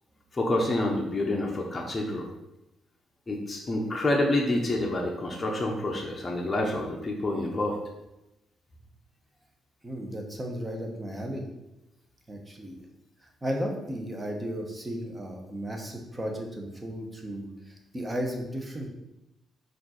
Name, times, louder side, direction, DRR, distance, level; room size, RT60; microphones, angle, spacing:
voice 1, 0.3-2.3 3.3-7.8, left 1 dB, 25° left, -1 dB, 0.7 m, -28 dB
voice 2, 9.8-11.4 12.3-12.8 13.4-18.9, equal, 20° right, 1 dB, 0.8 m, -34 dB
4.3 x 2.5 x 4.2 m, 0.92 s
cardioid pair, 90°, 0 cm